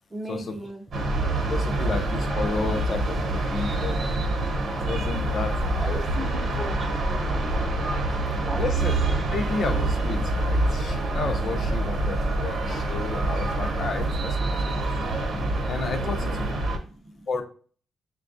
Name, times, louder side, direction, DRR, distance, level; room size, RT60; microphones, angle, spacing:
voice 1, 0.1-1.3 5.8-8.0 8.4-8.7 16.0-17.3, right 1 dB, 10° right, 5 dB, 0.5 m, -40 dB
sound 1, 0.9-16.8, right 2 dB, 50° right, 1.0 m, -26 dB
voice 2, 1.2-4.0 4.9-6.0 8.6-8.9 9.3-14.4 14.6-14.7 15.6-16.5 17.3-17.4, left 4 dB, 40° left, 7 dB, 0.5 m, -32 dB
6.7 x 2.3 x 2.5 m, 0.42 s
cardioid pair, 150°, 0 cm